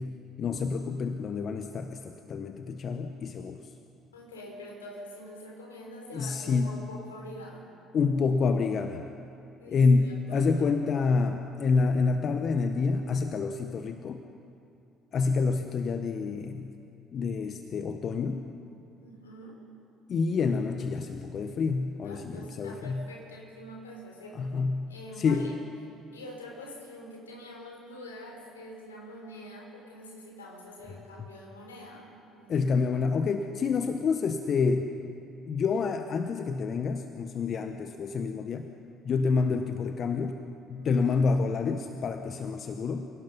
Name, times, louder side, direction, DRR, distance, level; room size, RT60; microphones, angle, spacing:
voice 1, 0.0-3.6 6.1-6.8 7.9-9.0 9.7-14.2 15.1-16.8 17.1-18.5 20.1-23.0 24.3-25.5 32.5-34.9 35.5-38.7 39.0-40.4 40.7-43.1, left 4 dB, 50° left, 7 dB, 1.1 m, -28 dB
voice 2, 4.1-7.7 9.6-10.6 19.0-19.6 22.0-24.5 24.9-25.5 26.1-32.5 40.7-41.0, left 1 dB, 85° left, -1 dB, 4.1 m, -45 dB
28.5 x 17.5 x 5.4 m, 2.5 s
hypercardioid pair, 55°, 0 cm